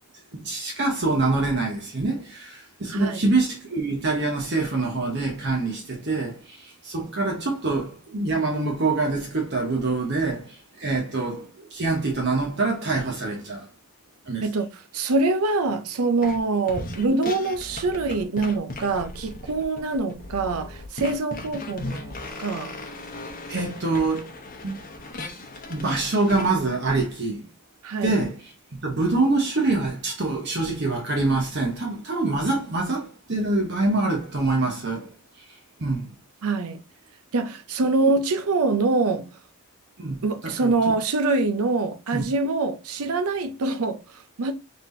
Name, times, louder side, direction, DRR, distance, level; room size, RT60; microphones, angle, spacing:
voice 1, 0.3-13.7 14.3-14.5 23.5-24.3 24.6-24.8 25.7-27.5 28.0-28.4 28.7-36.1 40.0-40.7 42.1-42.3, right 3 dB, 50° right, 1.0 m, -25 dB
voice 2, 2.9-3.2 14.4-22.7 27.8-28.2 36.4-36.8 37.3-39.4 40.2-44.5, right 3 dB, 80° right, 0.6 m, -25 dB
sound 1, 16.2-16.4 16.7-26.5, left 2 dB, 40° left, 0.8 m, -37 dB
4.1 x 3.5 x 2.6 m
head